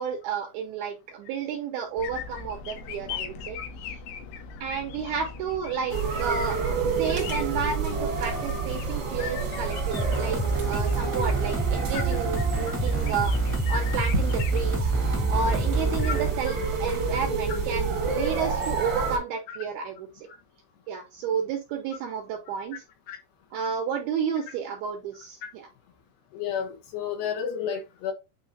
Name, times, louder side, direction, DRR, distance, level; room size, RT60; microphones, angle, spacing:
voice 1, 0.0-4.0 4.6-13.3 13.7-14.9 15.3-20.3 20.9-22.8 23.5-25.7, right 6 dB, 80° right, 2.3 m, -31 dB
sound 1, 2.0-14.6, left 6 dB, 90° left, 3.4 m, -40 dB
sound 2, 5.9-19.2, right 5 dB, 55° right, 1.3 m, -29 dB
sound 3, 9.9-16.3, right 2 dB, 10° right, 0.5 m, -27 dB
voice 2, 26.3-28.1, left 8 dB, 70° left, 2.8 m, -31 dB
9.3 x 4.5 x 2.7 m
omnidirectional pair, 5.4 m